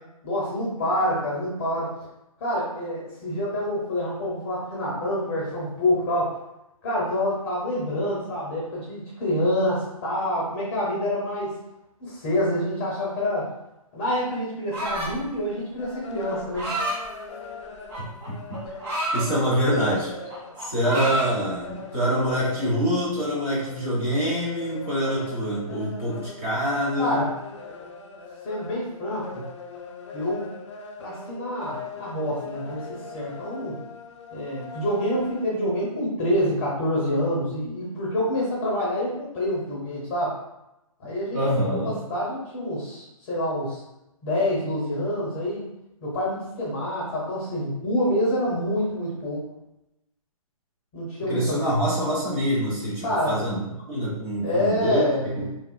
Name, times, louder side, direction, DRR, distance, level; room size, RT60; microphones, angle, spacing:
voice 1, 0.2-1.9 2.4-6.4 6.8-11.5 12.0-13.5 13.9-16.7 27.0-27.3 28.4-29.4 30.1-30.5 31.0-33.8 34.3-40.4 41.0-43.8 44.2-45.6 46.0-49.4 50.9-51.6 53.0-53.4 54.4-55.5, left 1 dB, 20° left, -5 dB, 0.8 m, -27 dB
sound 1, 14.7-15.3 16.3-17.0 17.9-19.2 19.7-20.0 20.3-21.3, right 1 dB, 45° right, 1.4 m, -29 dB
sound 2, 15.8-35.4, left 4 dB, 50° left, 0.4 m, -41 dB
voice 2, 18.3-18.6 19.1-20.1 20.6-27.2 41.3-41.9 51.3-53.6 53.9-55.0 55.4-55.5, equal, 20° right, -7 dB, 0.9 m, -25 dB
3.4 x 2.4 x 2.2 m, 0.90 s
hypercardioid pair, 155°, 19 cm